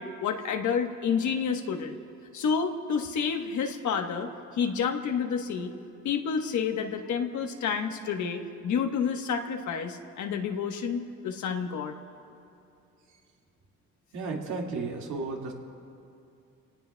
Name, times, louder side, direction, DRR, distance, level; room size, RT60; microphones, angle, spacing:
voice 1, 0.0-2.0 2.3-5.7 6.0-11.9, left 6 dB, 70° left, 5 dB, 1.2 m, -29 dB
voice 2, 14.1-15.5, right 3 dB, 75° right, 0 dB, 2.2 m, -33 dB
27.0 x 18.0 x 2.3 m, 2.6 s
cardioid pair, 90°, 30 cm